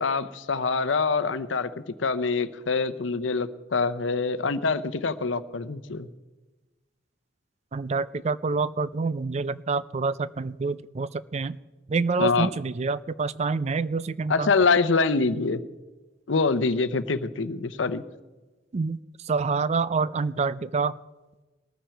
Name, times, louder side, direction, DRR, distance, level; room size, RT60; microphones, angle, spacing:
voice 1, 0.0-6.1 12.2-12.5 14.3-15.6 16.3-18.0, left 4 dB, 90° left, 13 dB, 0.8 m, -25 dB
voice 2, 7.7-11.6 11.9-14.5 18.7-21.0, right 4 dB, 35° right, 17 dB, 0.4 m, -27 dB
21.0 x 14.0 x 4.5 m, 1.2 s
head